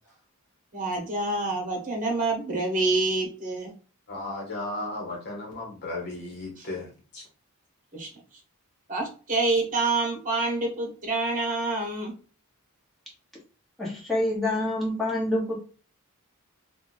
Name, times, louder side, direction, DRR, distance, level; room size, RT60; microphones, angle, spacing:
voice 1, 0.7-3.7 6.6-6.7 7.9-8.1 8.9-12.1, right 3 dB, 35° right, 1 dB, 1.3 m, -27 dB
voice 2, 4.1-7.3, left 2 dB, 50° left, -2 dB, 1.1 m, -35 dB
voice 3, 13.8-15.6, left 1 dB, ahead, -6 dB, 1.1 m, -27 dB
2.9 x 2.4 x 4.0 m, 0.36 s
head